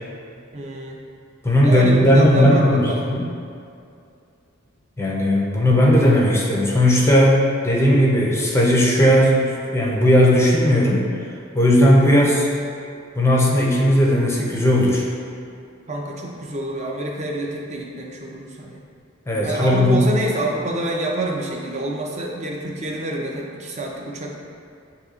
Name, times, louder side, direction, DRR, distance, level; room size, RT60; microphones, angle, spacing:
voice 1, 0.5-1.0 1.6-3.1 11.9-12.3 15.9-18.8 19.4-24.4, right 1 dB, 35° right, -1 dB, 0.5 m, -27 dB
voice 2, 1.4-3.3 5.0-9.4 9.7-11.1 11.5-12.5 13.2-15.1 19.3-20.1, equal, 10° left, -3 dB, 0.5 m, -16 dB
7.9 x 2.8 x 2.4 m, 2.5 s
head